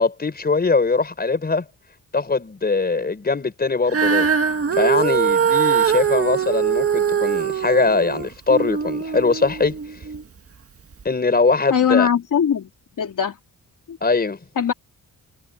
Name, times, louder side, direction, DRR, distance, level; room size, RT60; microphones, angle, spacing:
voice 1, 0.0-1.7 2.1-4.3 4.8-9.7 11.1-12.1 14.0-14.4, left 4 dB, 25° left, 5.2 m, -21 dB
Female singing, 3.9-10.2 10.9-11.0, right 7 dB, 40° right, 1.8 m, -21 dB
voice 2, 11.7-12.7 13.0-13.4 13.9-14.0 14.6-14.7, left 8 dB, 60° left, 3.4 m, -20 dB
wide cardioid pair, 140°, 35 cm